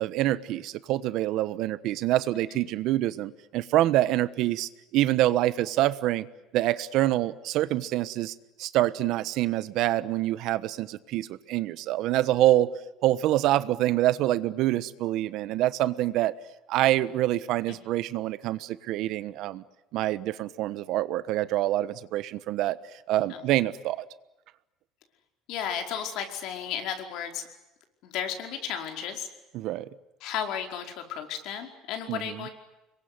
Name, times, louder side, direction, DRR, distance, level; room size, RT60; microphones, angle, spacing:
voice 1, 0.0-6.3 6.5-12.7 13.0-16.3 16.7-19.6 19.9-22.8 23.1-24.0 29.5-29.9 32.1-32.5, right 14 dB, 65° right, 15 dB, 1.2 m, -26 dB
voice 2, 25.5-27.4 28.0-29.3 30.2-32.5, left 8 dB, 65° left, 5 dB, 4.9 m, -33 dB
26.5 x 22.5 x 9.5 m, 0.98 s
cardioid pair, 140°, 0 cm